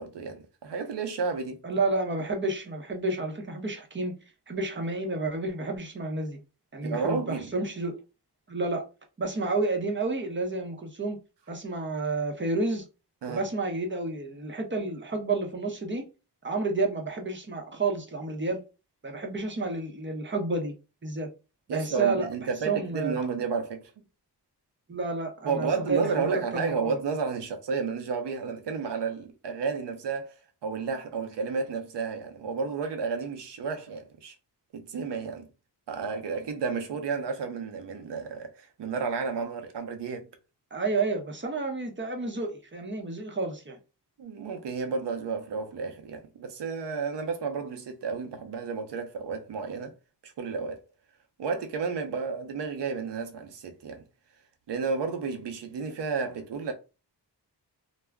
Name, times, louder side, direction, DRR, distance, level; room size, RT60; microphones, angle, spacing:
voice 1, 0.0-1.6 6.8-7.5 13.2-13.4 21.7-23.9 25.4-34.4 34.7-35.5 35.9-40.3 44.2-49.9 50.2-50.8 51.4-54.0 54.7-56.7, right 5 dB, 80° right, 0.7 m, -32 dB
voice 2, 1.6-4.1 4.5-6.4 6.7-8.0 8.5-8.8 9.2-11.2 11.5-12.8 13.3-16.0 16.4-18.6 19.0-20.7 21.0-21.3 21.7-23.2 24.9-26.9 40.7-43.8, right 3 dB, 30° right, 0.7 m, -30 dB
2.3 x 2.1 x 3.4 m
cardioid pair, 80°, 41 cm